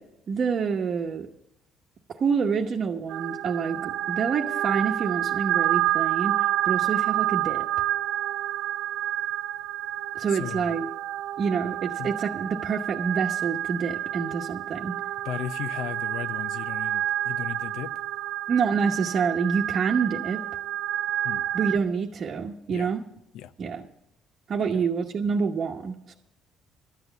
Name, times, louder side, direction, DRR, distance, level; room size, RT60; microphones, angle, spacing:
voice 1, 0.3-1.3 2.2-7.6 10.1-10.9 11.4-14.9 18.5-20.4 21.5-23.0 23.6-23.9 24.5-26.2, right 6 dB, 45° right, 0 dB, 1.0 m, -27 dB
sound 1, 3.1-21.8, right 13 dB, 80° right, 0.5 m, -29 dB
voice 2, 10.4-10.8 12.0-12.1 15.2-17.9 21.2-21.4 22.7-22.9 23.3-23.5 24.7-24.8, left 11 dB, 85° left, 14 dB, 0.6 m, -36 dB
12.5 x 8.2 x 8.0 m, 0.81 s
cardioid pair, 115°, 0 cm